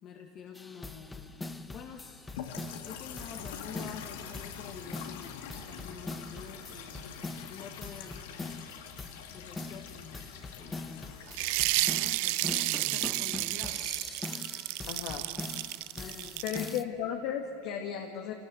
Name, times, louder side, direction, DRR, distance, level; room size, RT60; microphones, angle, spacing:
voice 1, 0.0-2.3 2.8-5.5 5.8-7.0 7.5-8.6 9.2-10.3 10.6-11.4 11.7-13.9 15.9-16.6, left 7 dB, 40° left, 2 dB, 1.7 m, -48 dB
sound 1, 0.5-16.8, left 2 dB, 10° left, 1.1 m, -43 dB
sound 2, 2.3-12.5, left 7 dB, 80° left, 2.0 m, -45 dB
sound 3, 11.3-16.8, right 22 dB, 65° right, 0.4 m, -31 dB
voice 2, 14.9-15.2 16.4-18.3, left 9 dB, 65° left, 3 dB, 1.9 m, -35 dB
25.5 x 18.5 x 7.8 m, 3.0 s
supercardioid pair, 130°, 0 cm